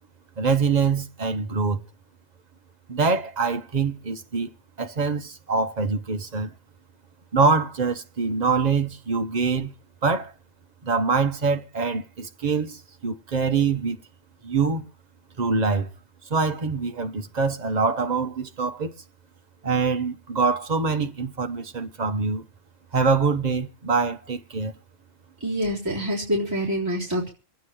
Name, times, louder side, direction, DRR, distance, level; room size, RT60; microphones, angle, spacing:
voice 1, 0.4-1.8 2.9-4.5 4.8-6.5 7.3-9.7 10.0-10.3 10.8-14.0 14.4-14.8 15.4-15.9 16.3-19.0 19.6-22.4 22.9-24.7, right 4 dB, 35° right, 0.9 m, -24 dB
voice 2, 25.4-27.3, equal, 15° right, 3.7 m, -26 dB
26.0 x 9.3 x 3.1 m
omnidirectional pair, 1.4 m